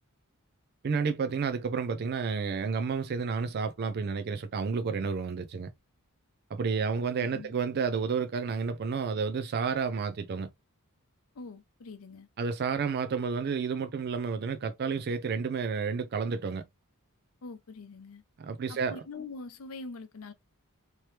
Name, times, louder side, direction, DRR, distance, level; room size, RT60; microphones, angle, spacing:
voice 1, 0.8-5.7 6.5-10.5 12.4-16.6 18.4-19.0, right 5 dB, 45° right, 0.4 m, -31 dB
voice 2, 11.3-12.3 17.4-18.2 18.7-20.3, left 3 dB, 70° left, 0.6 m, -43 dB
3.0 x 2.9 x 3.2 m
head